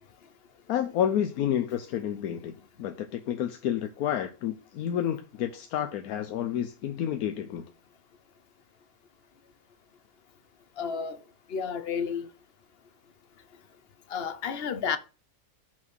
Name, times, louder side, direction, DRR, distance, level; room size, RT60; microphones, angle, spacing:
voice 1, 0.7-7.7, left 10 dB, 85° left, 1.1 m, -30 dB
voice 2, 10.8-11.2 11.5-12.3 14.1-15.0, left 6 dB, 50° left, 0.8 m, -31 dB
5.9 x 4.5 x 6.2 m
omnidirectional pair, 1.5 m